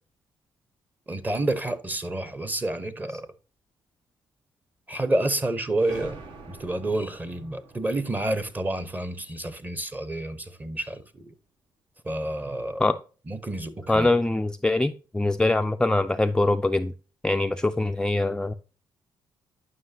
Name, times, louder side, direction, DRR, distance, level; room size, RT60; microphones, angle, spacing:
voice 1, 1.1-3.3 4.9-6.2 6.5-11.3 12.0-13.0 13.3-14.1, right 1 dB, 20° right, 0.9 m, -29 dB
sound 1, 5.8-10.2, right 3 dB, 70° right, 1.4 m, -47 dB
voice 2, 13.9-16.9 17.2-18.5, left 2 dB, 10° left, 0.3 m, -23 dB
9.6 x 5.7 x 2.7 m
cardioid pair, 90°, 8 cm